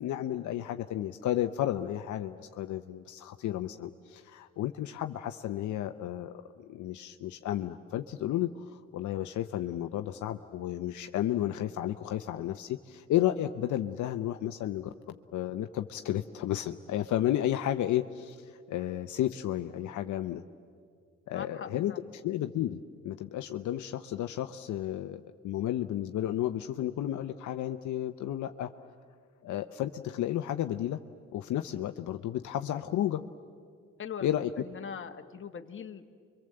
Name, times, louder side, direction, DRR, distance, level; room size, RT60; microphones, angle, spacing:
voice 1, 0.0-20.4 21.3-28.7 29.4-31.0 31.3-33.2 34.2-34.5, left 12 dB, 75° left, 7 dB, 0.8 m, -32 dB
voice 2, 21.3-22.0 34.0-34.3 34.6-36.1, left 7 dB, 40° left, 7 dB, 1.4 m, -41 dB
30.0 x 23.5 x 7.8 m, 2.2 s
cardioid pair, 90°, 30 cm